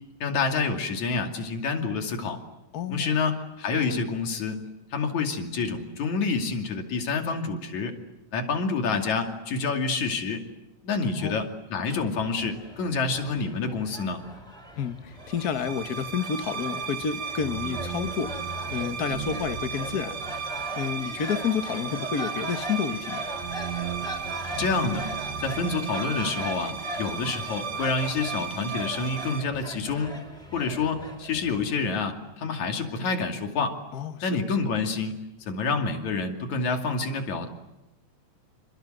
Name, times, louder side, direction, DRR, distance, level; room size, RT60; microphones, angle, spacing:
voice 1, 0.2-2.4 2.9-4.6 4.9-8.0 8.3-10.4 10.8-14.2 24.4-25.1 25.4-30.1 30.5-33.8 34.2-37.5, left 4 dB, 75° left, 4 dB, 4.0 m, -28 dB
voice 2, 2.7-3.2 3.9-4.0 11.2-11.4 14.8-20.1 20.8-23.2 33.9-34.3, left 7 dB, 50° left, 9 dB, 1.1 m, -30 dB
sound 1, 12.0-31.8, equal, ahead, 6.2 m, -40 dB
sound 2, 15.3-29.4, right 6 dB, 65° right, 2.5 m, -35 dB
28.0 x 26.0 x 7.9 m, 0.95 s
omnidirectional pair, 3.3 m